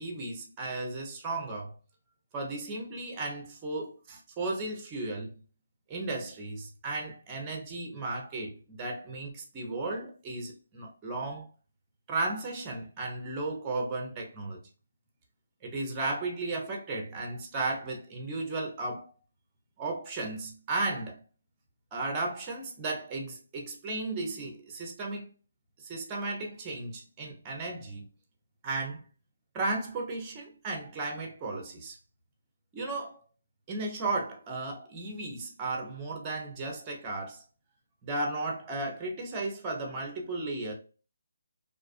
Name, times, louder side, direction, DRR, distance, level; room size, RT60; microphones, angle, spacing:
voice 1, 0.0-1.7 2.3-5.3 5.9-11.5 12.1-14.6 15.6-19.1 19.8-21.2 21.9-25.3 25.8-28.0 28.6-29.0 29.5-32.0 32.7-33.2 33.7-37.4 38.0-40.7, right 2 dB, 15° right, 0.5 m, -35 dB
2.4 x 2.3 x 2.4 m
hypercardioid pair, 165°, 0 cm